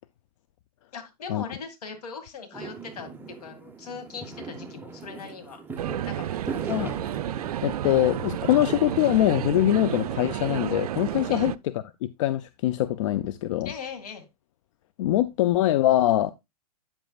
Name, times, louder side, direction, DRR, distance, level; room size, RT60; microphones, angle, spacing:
voice 1, 0.9-5.6 6.0-6.9 11.3-11.5 13.6-14.2, left 5 dB, 75° left, 2.2 m, -40 dB
Fireworks, 2.5-9.6, right 4 dB, 10° right, 0.9 m, -40 dB
sound 1, 5.8-11.6, right 12 dB, 70° right, 0.4 m, -31 dB
voice 2, 7.6-11.5 12.0-13.7 15.0-16.3, left 14 dB, 55° left, 0.5 m, -23 dB
8.5 x 7.9 x 2.4 m
hypercardioid pair, 115°, 20 cm